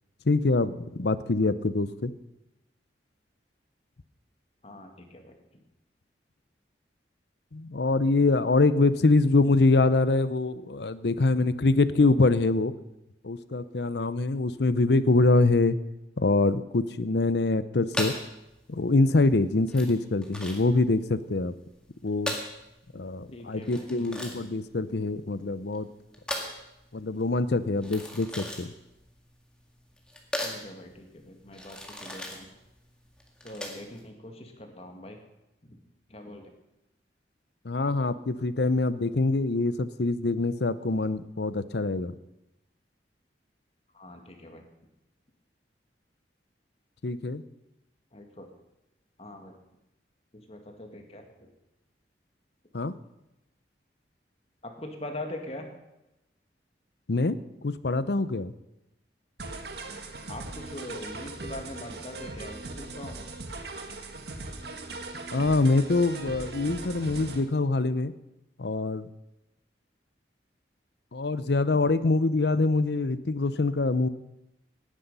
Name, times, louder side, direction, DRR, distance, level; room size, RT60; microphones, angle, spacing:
voice 1, 0.3-2.1 7.5-12.7 13.2-15.8 16.2-18.1 18.7-21.5 22.0-22.3 22.9-25.9 26.9-28.7 37.6-42.1 47.0-47.4 52.7-52.9 57.1-57.4 57.6-58.5 65.3-68.1 68.6-69.1 71.1-74.1, left 3 dB, 65° left, 15 dB, 0.7 m, -24 dB
voice 2, 4.6-5.4 23.3-24.4 30.4-32.5 33.4-35.2 35.6-35.8 36.1-36.5 43.9-44.6 48.1-48.5 49.2-49.5 50.5-51.5 54.6-55.7 60.3-63.3, left 1 dB, 35° left, 4 dB, 2.0 m, -42 dB
sound 1, 17.9-34.0, left 1 dB, 5° left, 2.0 m, -38 dB
sound 2, 59.4-67.4, right 2 dB, 65° right, 1.7 m, -39 dB
18.0 x 10.0 x 5.6 m, 0.93 s
head